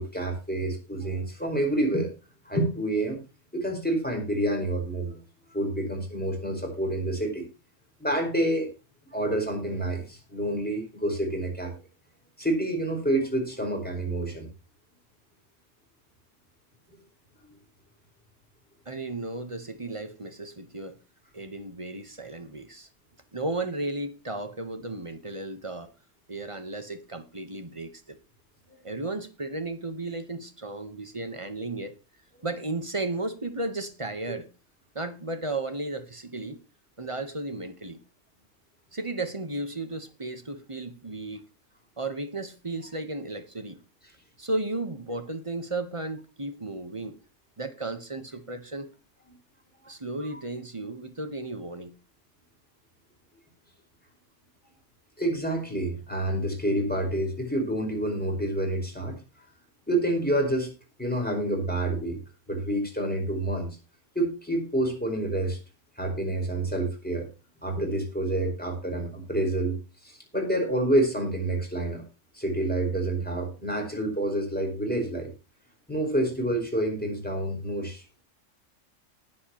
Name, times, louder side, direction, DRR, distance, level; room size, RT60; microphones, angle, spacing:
voice 1, 0.0-2.1 2.4-3.2 3.5-5.2 5.5-7.4 8.0-8.7 9.1-11.7 12.4-14.5 55.2-59.2 59.9-60.7 61.0-62.2 62.5-63.7 64.1-65.6 66.0-67.2 67.6-72.0 72.3-75.3 75.9-78.2, right 1 dB, 5° left, 5.1 m, -28 dB
voice 2, 18.9-21.0 21.3-22.9 23.3-25.9 26.3-28.2 28.8-32.0 32.4-34.5 34.9-36.6 37.0-38.0 38.9-41.4 42.0-43.8 44.4-47.2 47.6-48.9 49.9-51.9, right 2 dB, 25° right, 1.2 m, -34 dB
19.0 x 7.7 x 3.0 m
omnidirectional pair, 1.3 m